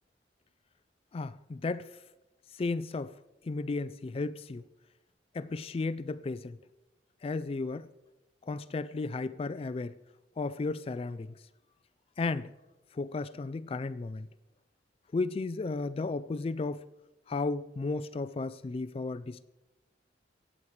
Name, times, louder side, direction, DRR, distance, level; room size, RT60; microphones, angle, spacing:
voice 1, 1.1-1.9 2.5-3.1 3.4-4.6 5.3-6.6 7.2-7.9 8.5-9.9 10.4-11.3 12.2-12.5 12.9-14.3 15.1-16.8 17.3-19.4, left 3 dB, 30° left, 0.3 m, -34 dB
24.5 x 8.5 x 3.2 m
head